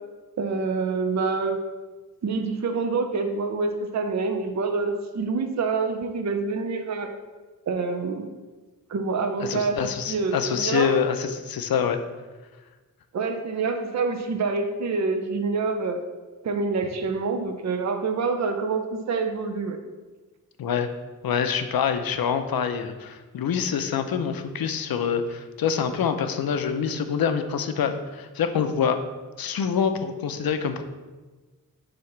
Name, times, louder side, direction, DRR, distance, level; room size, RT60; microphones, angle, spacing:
voice 1, 0.4-1.6 2.2-7.1 7.7-8.3 8.9-9.8 10.1-11.0 13.1-16.0 16.4-19.8, right 4 dB, 50° right, 5 dB, 0.6 m, -26 dB
voice 2, 9.4-12.0 20.6-20.9 21.2-29.0 29.4-30.8, left 7 dB, 90° left, 8 dB, 0.6 m, -26 dB
7.5 x 2.9 x 5.8 m, 1.3 s
wide cardioid pair, 160°, 35 cm